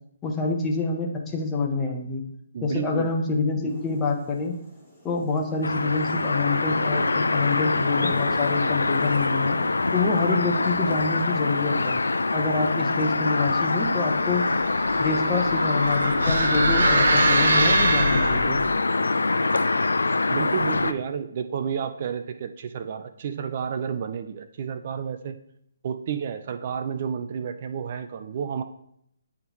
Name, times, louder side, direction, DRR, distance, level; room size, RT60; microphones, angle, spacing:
voice 1, 0.2-2.2 2.6-4.6 5.0-9.6 9.9-12.0 12.3-14.5 15.0-18.6, left 3 dB, 15° left, 1 dB, 1.0 m, -26 dB
voice 2, 2.5-3.1 3.6-3.7 20.3-25.4 25.8-28.6, right 7 dB, 45° right, 9 dB, 0.5 m, -31 dB
sound 1, 3.7-12.7, equal, ahead, 2.1 m, -44 dB
sound 2, 5.6-20.9, left 3 dB, 85° left, 0.4 m, -24 dB
sound 3, 14.2-18.7, right 2 dB, 75° right, 1.2 m, -24 dB
9.7 x 3.6 x 3.1 m, 0.73 s
hypercardioid pair, 150°, 0 cm